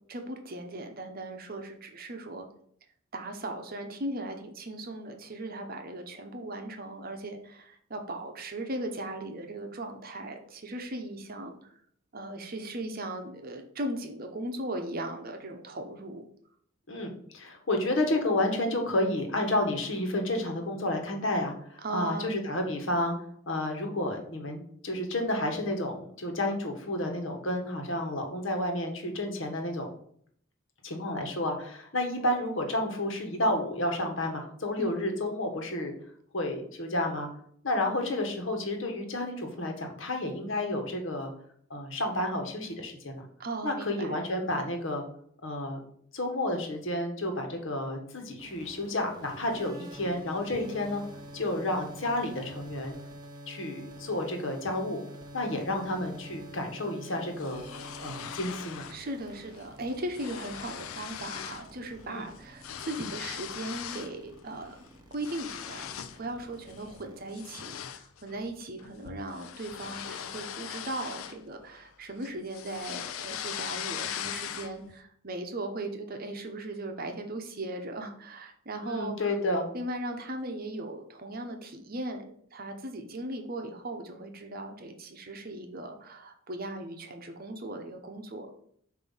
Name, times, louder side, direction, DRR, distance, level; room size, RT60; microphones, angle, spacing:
voice 1, 0.1-2.5 3.1-11.5 12.1-16.2 21.8-22.4 34.8-35.0 43.4-44.2 58.9-64.7 65.1-65.8 66.2-79.3 79.7-88.5, right 1 dB, 45° right, 5 dB, 0.8 m, -38 dB
voice 2, 16.9-23.1 23.5-29.9 30.8-35.9 36.3-37.3 37.6-41.3 41.7-43.3 43.6-45.0 45.4-45.8 46.1-51.0 51.3-53.0 53.5-55.0 55.3-57.7 58.0-58.9 62.1-62.2 78.8-79.7, left 1 dB, 65° left, 3 dB, 1.3 m, -31 dB
sound 1, 48.4-67.9, equal, 20° right, 1.0 m, -48 dB
sound 2, 57.4-59.0 59.4-59.6 59.9-61.7 62.0-64.2 64.6-66.2 66.7-66.9 67.3-71.9 72.2-74.9, left 9 dB, 85° left, 0.5 m, -40 dB
7.4 x 2.8 x 5.6 m, 0.63 s
head